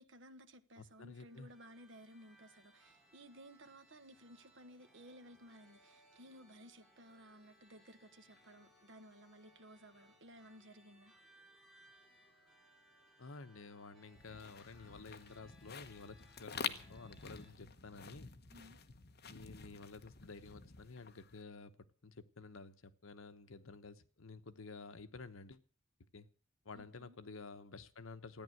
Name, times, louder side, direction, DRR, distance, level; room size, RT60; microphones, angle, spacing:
voice 1, 0.0-11.1 18.5-18.8 26.7-27.2, equal, 60° right, 1.4 m, -57 dB
voice 2, 0.8-1.5 13.2-18.3 19.3-25.6 26.1-26.3 26.6-28.4, left 3 dB, 80° left, 1.0 m, -52 dB
sound 1, 0.8-17.5, equal, ahead, 3.6 m, -67 dB
sound 2, 14.2-21.4, left 6 dB, 50° left, 1.0 m, -48 dB
14.0 x 10.0 x 7.8 m
head